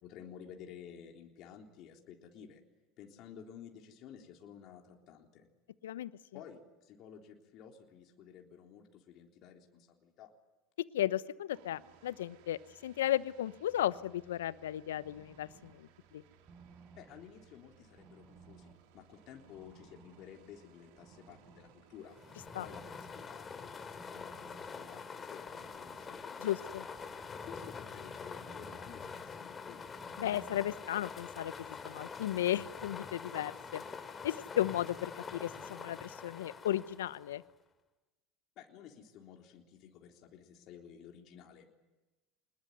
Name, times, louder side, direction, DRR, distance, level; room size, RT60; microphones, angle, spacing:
voice 1, 0.0-2.6 3.0-5.5 6.3-10.3 17.0-25.4 25.8-26.8 27.3-29.9 38.6-41.7, left 8 dB, 55° left, 2 dB, 3.6 m, -53 dB
voice 2, 10.9-16.2 22.5-22.7 26.4-26.8 30.2-33.8 34.2-37.4, left 12 dB, 80° left, 17 dB, 0.9 m, -35 dB
sound 1, 11.5-22.8, right 8 dB, 65° right, 2.8 m, -64 dB
sound 2, 14.5-30.8, right 5 dB, 40° right, 5.5 m, -60 dB
sound 3, 22.1-37.5, left 5 dB, 30° left, 2.8 m, -45 dB
25.0 x 21.0 x 9.4 m, 1.1 s
hypercardioid pair, 80°, 0 cm